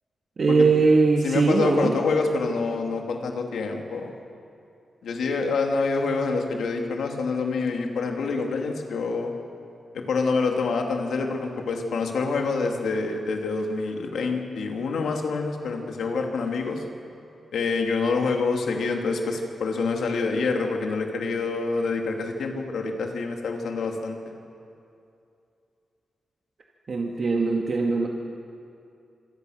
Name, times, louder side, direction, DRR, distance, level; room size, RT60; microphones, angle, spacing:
voice 1, 0.4-1.9 26.9-28.1, right 4 dB, 55° right, 0 dB, 1.9 m, -21 dB
voice 2, 1.2-4.1 5.0-9.3 9.9-16.8 17.5-24.3, left 4 dB, 85° left, 2 dB, 2.7 m, -26 dB
26.5 x 22.5 x 6.6 m, 2.6 s
cardioid pair, 80°, 0 cm